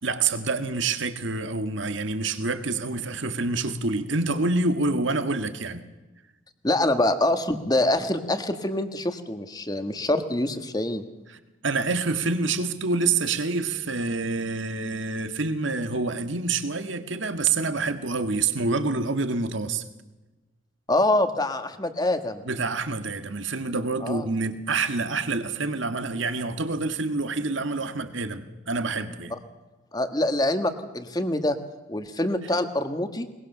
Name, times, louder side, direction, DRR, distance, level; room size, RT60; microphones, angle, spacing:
voice 1, 0.0-5.8 11.3-19.8 22.4-29.3, right 3 dB, 70° right, 9 dB, 1.6 m, -27 dB
voice 2, 6.6-11.0 20.9-22.4 24.0-24.2 29.9-31.6 31.9-33.3, left 1 dB, 20° left, 9 dB, 1.5 m, -25 dB
22.0 x 21.5 x 6.7 m, 1.1 s
head